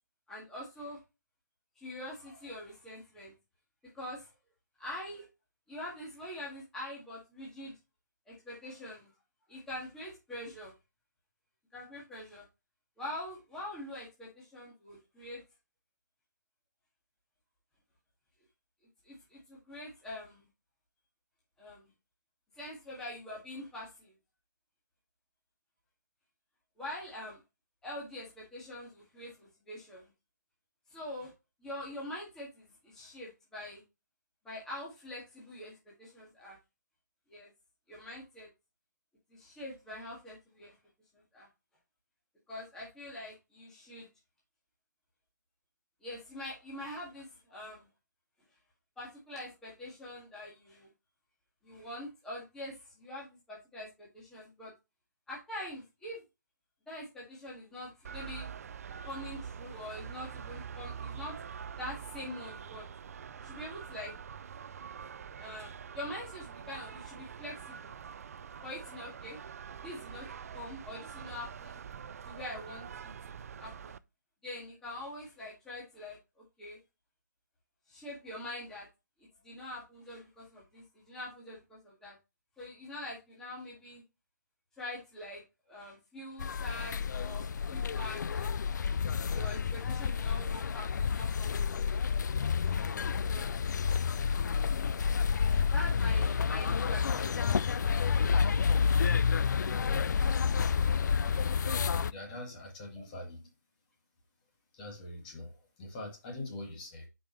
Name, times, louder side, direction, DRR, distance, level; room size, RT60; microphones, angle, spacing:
voice 1, 0.3-1.0 1.8-3.3 3.9-4.3 4.8-5.3 5.7-7.7 8.3-9.1 9.5-10.7 11.7-12.4 13.0-15.4 19.0-20.5 21.6-21.8 22.6-24.1 26.8-27.4 27.8-30.1 30.9-31.3 31.6-33.8 34.4-36.6 37.3-37.5 37.9-38.5 39.3-40.7 41.3-41.5 42.5-44.1 46.0-47.9 49.0-50.9 51.6-54.7 55.3-56.2 56.9-58.5 59.1-61.4 61.8-62.9 63.4-64.1 65.4-67.9 68.6-69.4 69.8-70.3 70.5-71.8 72.2-74.0 74.4-76.2 76.6-76.8 77.9-78.9 79.4-82.1 82.6-84.0 84.8-85.4 85.7-88.5 89.3-91.8 93.3-93.6 95.7-97.6 103.0-103.1, left 1 dB, 5° left, 2.0 m, -44 dB
sound 1, 58.0-74.0, right 7 dB, 55° right, 0.4 m, -45 dB
sound 2, 86.4-102.1, left 6 dB, 75° left, 0.4 m, -29 dB
voice 2, 101.9-103.5 104.7-107.1, left 2 dB, 25° left, 2.2 m, -43 dB
8.4 x 5.3 x 3.2 m
hypercardioid pair, 165°, 10 cm